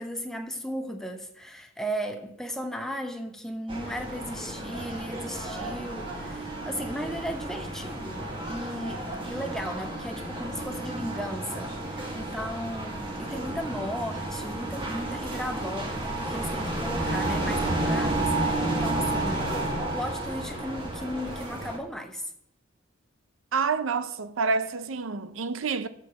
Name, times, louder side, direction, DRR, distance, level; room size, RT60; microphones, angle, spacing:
voice 1, 0.0-19.5 19.9-22.2, equal, ahead, 0.8 m, -36 dB
sound 1, 3.7-21.8, right 2 dB, 25° right, 1.5 m, -31 dB
voice 2, 23.5-25.9, right 4 dB, 85° right, 0.6 m, -28 dB
7.1 x 6.7 x 7.8 m
head